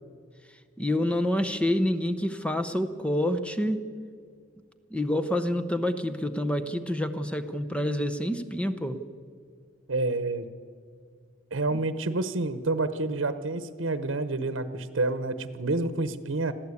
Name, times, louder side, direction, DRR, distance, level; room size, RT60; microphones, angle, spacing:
voice 1, 0.8-3.8 4.9-9.0 11.7-11.8, left 1 dB, 5° left, 10 dB, 0.8 m, -27 dB
voice 2, 9.9-10.5 11.5-16.5, right 2 dB, 80° right, 12 dB, 1.0 m, -28 dB
21.5 x 14.5 x 8.4 m, 2.1 s
head